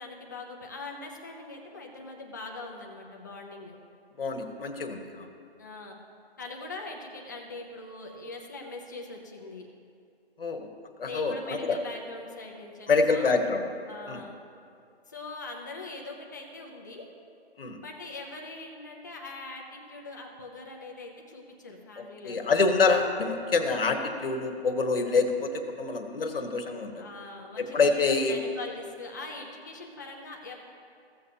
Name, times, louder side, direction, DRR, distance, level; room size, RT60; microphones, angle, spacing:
voice 1, 0.0-3.8 5.6-6.0 6.4-9.7 11.0-13.2 13.9-14.4 15.1-17.1 17.8-22.5 27.0-30.6, left 3 dB, 20° left, 0 dB, 0.6 m, -42 dB
voice 2, 4.2-5.3 10.4-10.7 11.0-11.8 12.9-13.6 14.1-14.2 17.6-17.8 22.2-27.0 27.6-28.3, left 4 dB, 60° left, 4 dB, 1.2 m, -26 dB
15.5 x 7.0 x 2.8 m, 2.5 s
hypercardioid pair, 160°, 32 cm